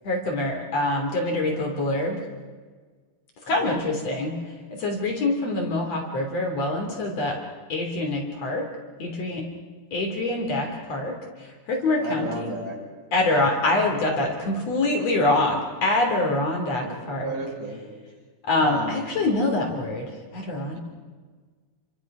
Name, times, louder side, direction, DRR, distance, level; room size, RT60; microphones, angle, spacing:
voice 1, 0.0-2.2 3.5-7.4 7.7-8.7 9.0-9.4 9.9-12.5 13.1-17.3 18.5-20.8, left 2 dB, 50° left, 1 dB, 4.0 m, -25 dB
voice 2, 1.5-1.9 3.5-3.7 12.0-12.8 13.2-13.5 16.8-17.8 18.6-19.0 20.7-20.8, right 2 dB, 60° right, -6 dB, 9.3 m, -34 dB
29.5 x 24.0 x 6.1 m, 1.5 s
omnidirectional pair, 3.9 m